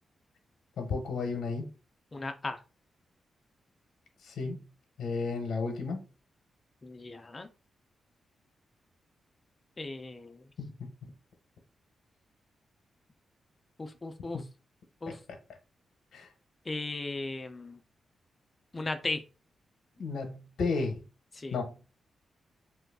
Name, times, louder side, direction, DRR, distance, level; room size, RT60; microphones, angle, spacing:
voice 1, 0.8-1.7 4.2-4.7 5.0-6.0 10.6-10.9 14.3-14.4 16.1-16.3 20.0-21.0 21.5-21.8, left 4 dB, 80° left, 0.7 m, -33 dB
voice 2, 2.1-2.6 6.8-7.5 9.8-10.5 13.8-14.4 15.0-15.2 16.7-17.8 18.7-19.2 21.3-21.6, left 2 dB, 25° left, 0.4 m, -37 dB
3.0 x 2.3 x 3.4 m
wide cardioid pair, 160°, 0 cm